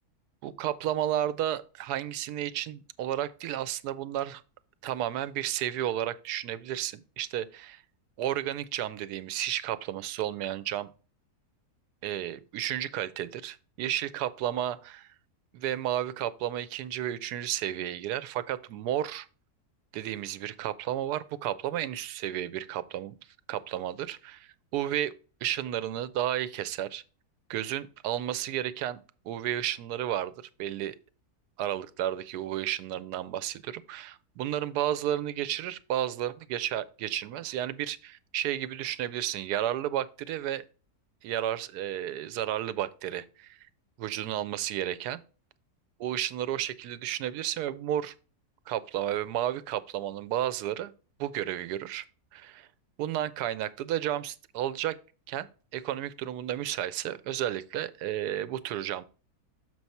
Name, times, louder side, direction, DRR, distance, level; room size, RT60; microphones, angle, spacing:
voice 1, 0.4-4.4 4.8-7.8 8.2-10.9 12.0-15.1 15.5-19.3 19.9-23.1 23.5-25.1 25.4-27.0 27.5-29.0 29.2-30.3 30.6-31.0 31.6-40.6 41.2-43.6 44.0-45.2 46.0-48.1 48.7-50.9 51.2-52.0 52.3-52.7 53.0-54.9 55.3-55.5 55.7-59.0, right 12 dB, 90° right, 1.1 m, -32 dB
6.9 x 4.7 x 4.1 m
omnidirectional pair, 1.6 m